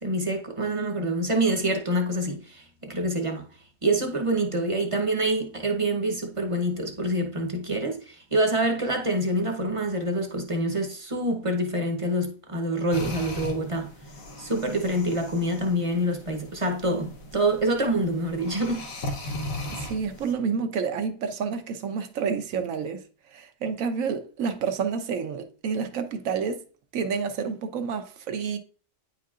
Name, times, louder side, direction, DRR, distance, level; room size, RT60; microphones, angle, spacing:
voice 1, 0.0-3.5 3.8-13.9 14.4-18.9, right 1 dB, 30° right, 0.8 m, -26 dB
sound 1, 12.9-20.3, left 1 dB, 90° left, 1.4 m, -38 dB
voice 2, 19.7-23.0 23.3-26.6 26.9-28.6, right 6 dB, 80° right, 1.1 m, -29 dB
9.3 x 4.7 x 2.4 m
omnidirectional pair, 1.4 m